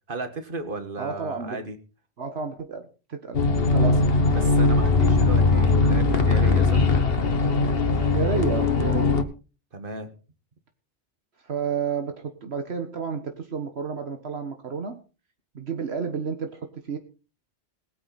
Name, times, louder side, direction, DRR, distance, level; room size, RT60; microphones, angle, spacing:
voice 1, 0.1-1.8 4.3-6.8 9.7-10.1, right 3 dB, 50° right, 8 dB, 2.0 m, -35 dB
voice 2, 1.0-1.6 2.2-4.1 8.0-9.1 11.4-15.0 15.5-17.0, right 5 dB, 70° right, 6 dB, 1.6 m, -31 dB
sound 1, 3.3-9.2, left 3 dB, 60° left, 1.5 m, -20 dB
20.0 x 9.3 x 4.2 m, 0.34 s
omnidirectional pair, 1.1 m